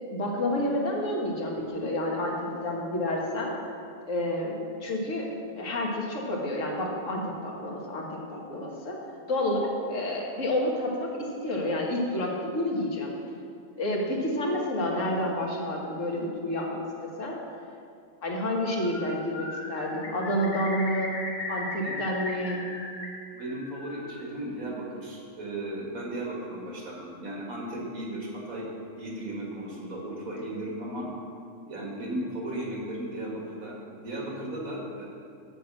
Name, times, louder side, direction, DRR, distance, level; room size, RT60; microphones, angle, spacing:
voice 1, 0.1-3.5 4.1-5.3 5.6-9.0 9.3-13.1 13.8-17.4 18.2-21.2 21.5-22.6, left 1 dB, 65° left, -1 dB, 1.8 m, -29 dB
Bird, 18.5-19.1 19.3-23.1 23.4-24.2, left 2 dB, 90° left, 2.3 m, -37 dB
voice 2, 23.3-28.7 29.0-31.1 31.7-35.1, right 1 dB, 85° right, -3 dB, 2.3 m, -36 dB
7.6 x 6.0 x 7.6 m, 2.4 s
omnidirectional pair, 1.4 m